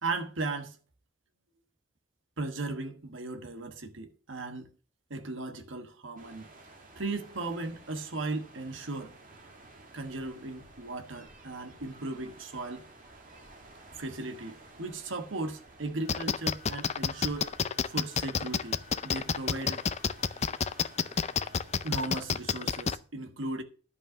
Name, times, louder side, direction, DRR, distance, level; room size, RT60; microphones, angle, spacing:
voice 1, 0.0-0.8 2.4-4.7 5.1-6.5 7.0-9.1 9.9-12.8 13.9-17.5 17.9-19.9 21.8-23.6, right 2 dB, 70° right, 1.3 m, -36 dB
sound 1, 6.2-22.2, right 2 dB, 45° right, 2.2 m, -53 dB
sound 2, 16.1-22.9, left 6 dB, 35° left, 0.5 m, -28 dB
11.0 x 5.6 x 6.2 m
head